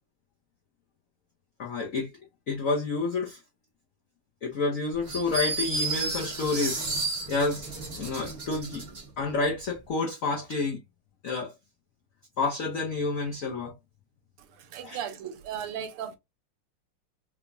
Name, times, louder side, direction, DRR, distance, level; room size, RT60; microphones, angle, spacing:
voice 1, 1.6-2.1 2.5-3.4 4.4-6.8 7.3-7.6 8.0-8.8 9.2-10.8 11.2-11.5 12.4-13.7 14.8-15.1, left 3 dB, 75° left, 0.7 m, -29 dB
sound 1, 5.1-9.0, right 3 dB, 40° right, 1.0 m, -32 dB
voice 2, 14.7-16.2, right 9 dB, 85° right, 1.6 m, -36 dB
4.9 x 2.2 x 2.5 m
omnidirectional pair, 2.4 m